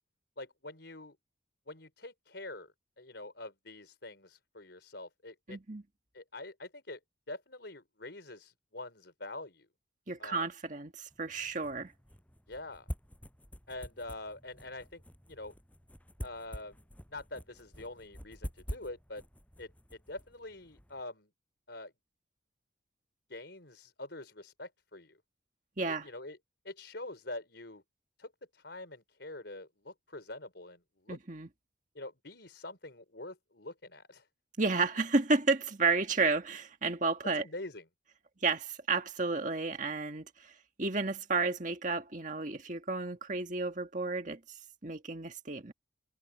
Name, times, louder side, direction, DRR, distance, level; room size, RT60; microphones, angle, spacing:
voice 1, 0.4-1.2 1.7-2.7 3.0-5.6 6.1-7.0 7.3-9.7 10.2-10.4 12.5-12.9 13.7-15.0 15.3-15.5 16.2-16.8 17.1-19.2 19.6-21.3 21.7-21.9 23.3-25.2 25.9-26.4 26.6-27.8 28.2-31.2 31.9-34.3 37.3-37.8, left 2 dB, 65° left, 4.7 m, -45 dB
voice 2, 5.5-5.8 10.1-11.9 25.8-26.1 31.1-31.5 34.6-37.4 38.4-40.2 40.8-44.4 44.8-45.7, right 3 dB, 40° right, 1.8 m, -31 dB
sound 1, 11.1-21.0, equal, 10° left, 7.8 m, -47 dB
head